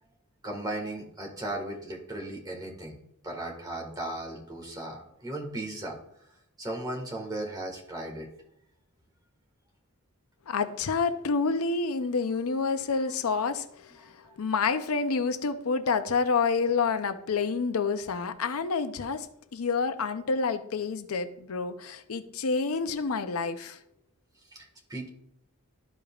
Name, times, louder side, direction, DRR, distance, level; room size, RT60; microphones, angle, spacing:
voice 1, 0.4-3.0 3.2-6.0 6.6-8.3 14.0-14.3 24.5-25.1, right 1 dB, 20° right, 0 dB, 1.6 m, -36 dB
voice 2, 10.5-13.9 14.4-19.3 19.5-23.8, left 4 dB, 80° left, 10 dB, 0.6 m, -28 dB
12.5 x 5.1 x 2.4 m, 0.74 s
head